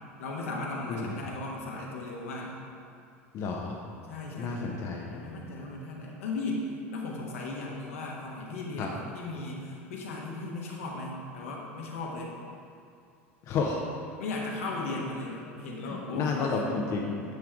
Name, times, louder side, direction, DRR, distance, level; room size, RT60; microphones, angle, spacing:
voice 1, 0.2-2.5 4.1-12.3 14.2-16.6, left 2 dB, 75° left, -2 dB, 1.3 m, -36 dB
voice 2, 0.9-1.2 3.3-3.8 4.4-5.2 8.8-8.9 13.4-13.8 15.8-17.2, left 4 dB, 45° left, 0 dB, 0.8 m, -31 dB
9.6 x 3.6 x 4.7 m, 2.4 s
hypercardioid pair, 80°, 7 cm